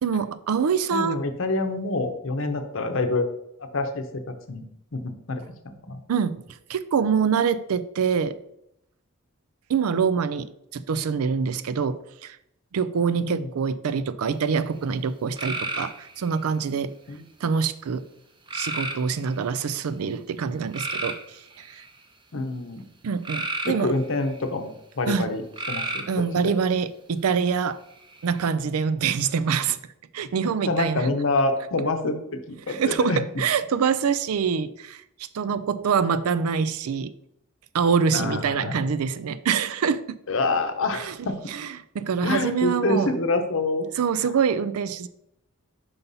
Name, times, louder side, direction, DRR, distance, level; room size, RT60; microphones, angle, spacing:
voice 1, 0.0-1.2 6.1-6.4 6.7-8.4 9.7-10.5 10.7-12.4 12.7-16.9 17.4-18.0 18.5-21.2 21.7-21.8 23.0-23.9 25.1-25.3 26.1-27.8 28.2-29.8 30.1-31.1 32.7-35.0 35.3-37.1 37.7-40.2 40.9-43.1 44.0-45.1, right 6 dB, 80° right, 0.4 m, -25 dB
voice 2, 0.9-3.3 3.7-4.6 4.9-6.0 13.2-13.5 17.1-17.2 22.3-22.8 23.6-25.4 25.7-26.1 26.4-26.5 30.7-33.2 38.1-38.7 40.3-41.4 42.2-43.8, left 2 dB, 60° left, 0.7 m, -27 dB
sound 1, 15.4-16.4 18.5-19.3 20.7-22.0 23.2-24.4 25.5-26.2 27.9-28.4, right 2 dB, 20° right, 0.7 m, -32 dB
5.6 x 4.1 x 5.5 m
head